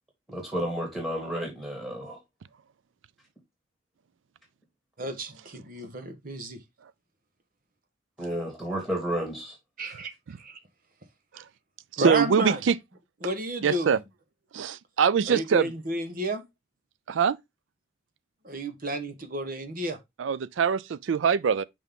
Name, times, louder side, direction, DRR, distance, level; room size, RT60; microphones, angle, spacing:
voice 1, 0.3-2.2 8.2-9.6, equal, 5° right, 2.5 m, -31 dB
voice 2, 5.0-6.6 9.8-10.1 10.4-10.6 12.0-12.6 13.2-14.0 15.3-16.4 18.4-20.0, right 1 dB, 45° right, 1.2 m, -31 dB
voice 3, 12.0-12.8 13.6-14.0 14.5-15.7 17.1-17.4 20.2-21.6, right 7 dB, 80° right, 0.4 m, -23 dB
5.8 x 5.2 x 3.6 m
head